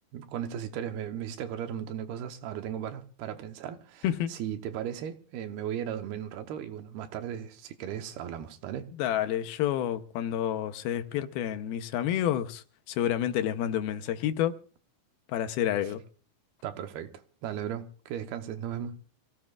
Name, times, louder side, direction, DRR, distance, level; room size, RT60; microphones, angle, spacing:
voice 1, 0.1-8.9 16.6-17.1 17.4-19.0, right 9 dB, 85° right, 3.0 m, -36 dB
voice 2, 9.0-14.5 15.3-16.0, left 11 dB, 80° left, 2.8 m, -29 dB
26.0 x 16.5 x 2.4 m
omnidirectional pair, 4.4 m